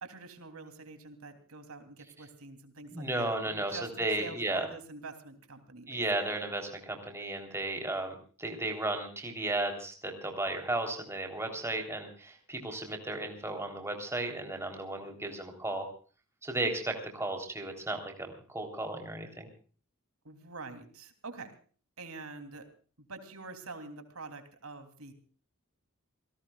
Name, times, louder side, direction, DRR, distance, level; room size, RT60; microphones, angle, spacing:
voice 1, 0.0-6.0 20.2-21.5 22.0-22.7 23.0-25.1, right 3 dB, 85° right, 7 dB, 3.2 m, -46 dB
voice 2, 2.9-4.7 5.9-15.9 16.4-19.5, right 2 dB, 10° right, 3 dB, 3.6 m, -34 dB
28.0 x 18.0 x 2.4 m, 0.41 s
head